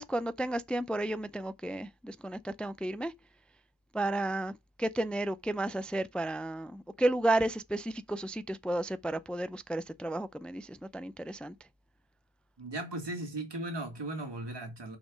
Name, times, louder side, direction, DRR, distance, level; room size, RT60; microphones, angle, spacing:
voice 1, 0.0-3.1 3.9-4.5 4.8-11.5, right 1 dB, 5° left, 0.4 m, -32 dB
voice 2, 12.6-15.0, right 1 dB, 70° right, 2.0 m, -37 dB
6.0 x 4.3 x 6.1 m
wide cardioid pair, 55°, 43 cm